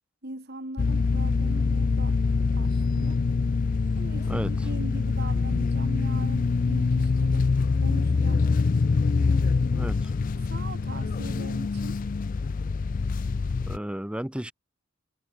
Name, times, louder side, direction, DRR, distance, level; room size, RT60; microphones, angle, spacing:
voice 1, 0.2-2.2 2.5-3.2 4.0-8.4 9.2-9.6 10.3-12.1, right 1 dB, 55° right, 4.4 m, -41 dB
sound 1, 0.8-13.8, left 4 dB, 45° left, 0.4 m, -25 dB
voice 2, 9.7-10.2 11.2-11.4 13.7-14.5, equal, 5° right, 0.9 m, -33 dB
head